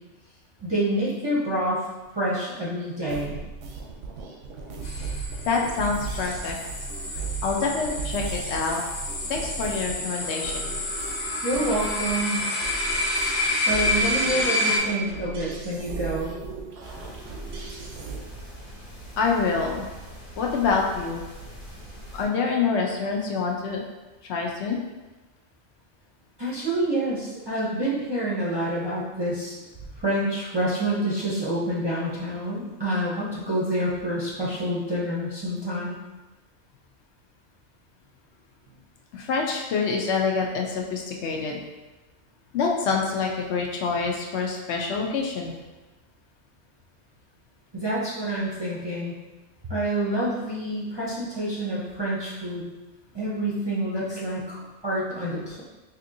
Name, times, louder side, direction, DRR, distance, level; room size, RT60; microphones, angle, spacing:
voice 1, 0.6-1.8 2.1-3.4 11.4-12.5 13.7-16.3 26.4-29.5 29.9-36.0 47.7-49.1 49.6-52.7 53.1-55.6, right 1 dB, 30° right, -8 dB, 0.5 m, -27 dB
sound 1, 3.1-18.2, right 4 dB, 90° right, 0.9 m, -36 dB
sound 2, 4.8-14.8, left 1 dB, 50° left, 0.6 m, -29 dB
voice 2, 5.4-6.6 7.4-8.8 9.3-10.7 19.2-19.9 20.4-21.2 22.1-23.8 24.2-24.8 39.1-41.6 42.5-45.5, left 4 dB, 75° left, 0 dB, 0.9 m, -26 dB
sound 3, 16.8-22.3, right 1 dB, 25° left, 1.1 m, -42 dB
4.2 x 2.7 x 2.6 m, 1.1 s
omnidirectional pair, 1.2 m